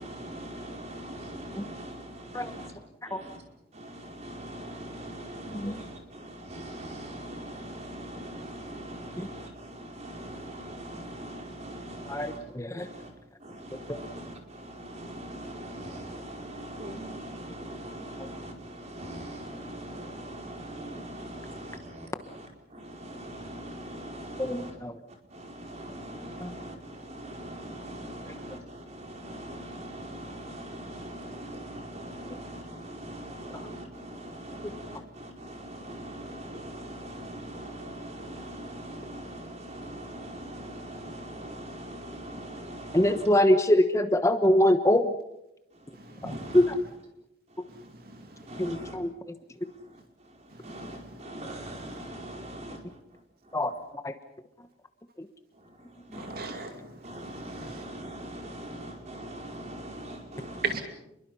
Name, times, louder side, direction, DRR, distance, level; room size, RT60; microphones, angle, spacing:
voice 1, 0.0-2.7 3.0-3.4 3.7-12.4 12.8-13.1 13.4-24.7 25.3-43.2 45.7-46.7 47.5-49.0 50.2-52.8 53.4-53.6 55.6-56.5 57.0-60.6, right 1 dB, 40° right, 4.8 m, -41 dB
voice 2, 5.5-5.8 9.2-9.3 12.1-12.9 13.9-14.0 24.4-25.0 26.4-26.5 28.2-28.3 32.3-32.4 34.6-34.7 42.9-45.1 46.2-46.8 47.6-47.7 48.6-49.1 53.5-53.7 54.0-54.1, left 1 dB, 15° left, 1.1 m, -24 dB
voice 3, 45.9-46.6 47.7-48.9 50.5-51.2 51.5-52.1 56.1-57.8 60.6-60.8, right 4 dB, 55° right, 2.7 m, -39 dB
29.5 x 22.5 x 5.6 m
head